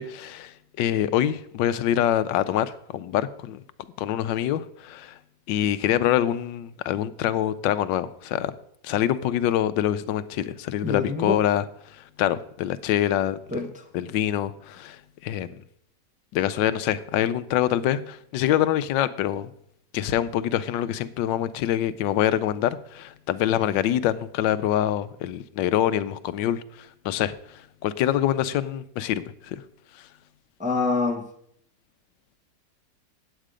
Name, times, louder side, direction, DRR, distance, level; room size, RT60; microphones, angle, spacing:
voice 1, 0.0-3.6 4.0-5.2 5.5-8.5 8.8-11.6 12.0-13.4 13.9-15.6 16.3-19.5 19.9-29.6, left 11 dB, 90° left, 14 dB, 1.3 m, -25 dB
voice 2, 10.8-11.4 13.5-13.8 30.6-31.3, left 3 dB, 5° right, 3 dB, 0.6 m, -26 dB
9.1 x 8.3 x 5.0 m, 0.68 s
omnidirectional pair, 1.9 m